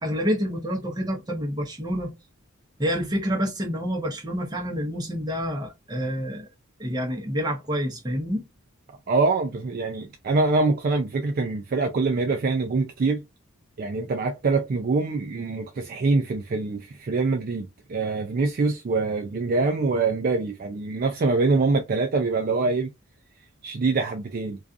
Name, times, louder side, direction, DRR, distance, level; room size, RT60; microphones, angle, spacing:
voice 1, 0.0-2.1 2.8-6.5 6.8-8.5, equal, 20° right, 0.7 m, -28 dB
voice 2, 8.9-13.2 13.8-22.9 23.6-24.6, right 3 dB, 40° right, 0.3 m, -24 dB
2.4 x 2.3 x 2.4 m
head